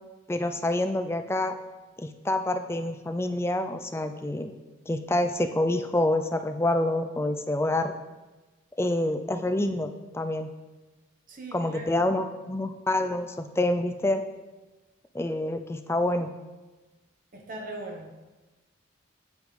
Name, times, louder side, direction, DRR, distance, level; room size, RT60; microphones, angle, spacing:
voice 1, 0.3-1.6 2.0-4.5 4.9-7.9 8.8-10.5 11.5-14.2 15.1-16.3, left 1 dB, 10° left, 7 dB, 0.3 m, -27 dB
voice 2, 11.3-11.9 17.3-18.1, right 2 dB, 40° right, 1 dB, 1.0 m, -39 dB
8.4 x 8.2 x 3.3 m, 1.2 s
head